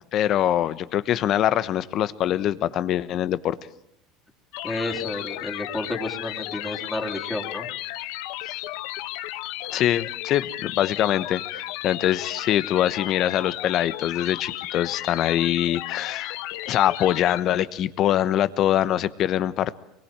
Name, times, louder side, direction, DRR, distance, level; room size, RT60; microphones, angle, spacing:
voice 1, 0.1-3.6 8.4-8.6 9.7-16.4 16.7-19.8, left 11 dB, 45° left, 16 dB, 1.1 m, -23 dB
sound 1, 4.5-17.4, left 16 dB, 75° left, 1.0 m, -34 dB
voice 2, 4.6-7.7, left 2 dB, 10° left, 2 dB, 3.0 m, -31 dB
24.5 x 22.5 x 8.9 m, 0.78 s
supercardioid pair, 130°, 0 cm